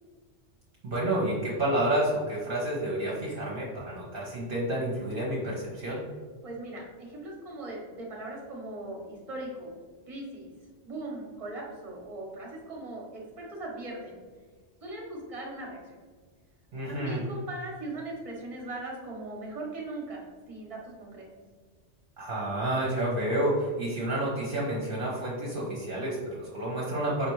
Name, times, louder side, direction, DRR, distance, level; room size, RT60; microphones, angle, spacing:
voice 1, 0.8-6.0 16.7-17.2 22.2-27.3, right 1 dB, 50° right, -5 dB, 1.0 m, -29 dB
voice 2, 6.4-9.8 10.1-10.5 10.8-14.2 14.8-16.0 16.8-21.3, right 2 dB, 30° right, -2 dB, 1.1 m, -39 dB
5.2 x 3.3 x 3.1 m, 1.5 s
omnidirectional pair, 1.2 m